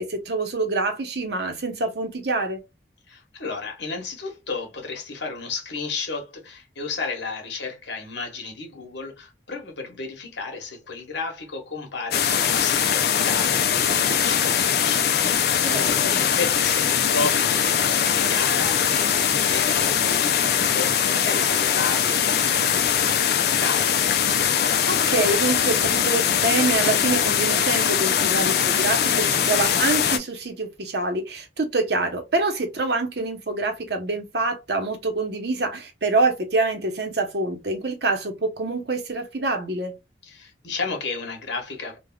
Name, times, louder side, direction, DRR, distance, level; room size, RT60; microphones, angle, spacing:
voice 1, 0.0-2.6 15.6-16.2 24.9-39.9, right 3 dB, 65° right, 0.9 m, -26 dB
voice 2, 3.1-24.0 40.2-42.0, left 4 dB, 75° left, 1.2 m, -33 dB
sound 1, 12.1-30.2, left 8 dB, 60° left, 0.4 m, -21 dB
3.3 x 2.4 x 2.3 m
head